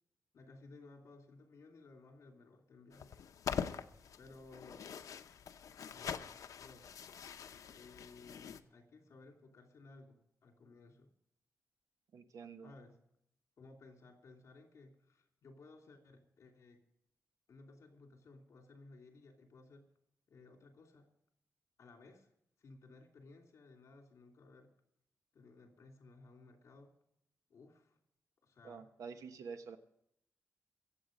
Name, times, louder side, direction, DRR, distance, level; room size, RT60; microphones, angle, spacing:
voice 1, 0.3-3.2 4.2-4.9 5.8-6.9 7.7-11.1 12.6-13.0 13.6-16.8 17.5-19.9 20.3-21.1 21.8-22.3 22.6-24.7 25.3-26.9 27.5-28.0 28.4-28.9, left 3 dB, 60° left, 3 dB, 2.9 m, -58 dB
sound 1, 2.9-8.6, left 7 dB, 90° left, 0.8 m, -44 dB
voice 2, 12.1-12.7 28.6-29.8, right 5 dB, 85° right, 8 dB, 1.2 m, -48 dB
23.0 x 8.2 x 5.3 m, 0.75 s
wide cardioid pair, 160°, 6 cm